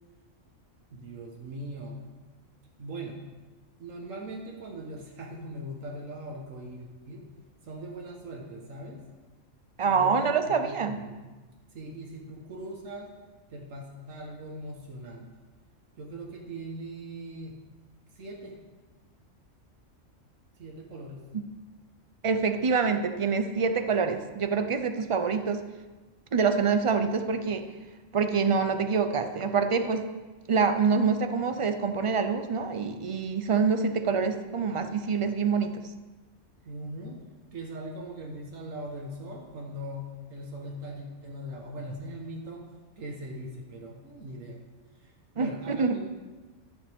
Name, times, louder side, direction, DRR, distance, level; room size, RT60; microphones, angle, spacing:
voice 1, 0.9-2.0 2.8-3.2 3.8-7.3 7.6-9.0 9.9-11.4 11.7-13.1 13.5-15.3 16.0-17.6 18.2-18.6 20.6-21.2 36.7-37.2 37.5-42.6 43.0-44.6 45.0-46.1, right 1 dB, 90° right, 0 dB, 1.7 m, -40 dB
voice 2, 9.8-11.0 22.2-25.6 26.3-27.6 28.1-30.1 30.5-35.8 45.4-46.0, right 5 dB, 45° right, 8 dB, 0.4 m, -26 dB
11.0 x 9.8 x 3.6 m, 1.2 s
omnidirectional pair, 1.3 m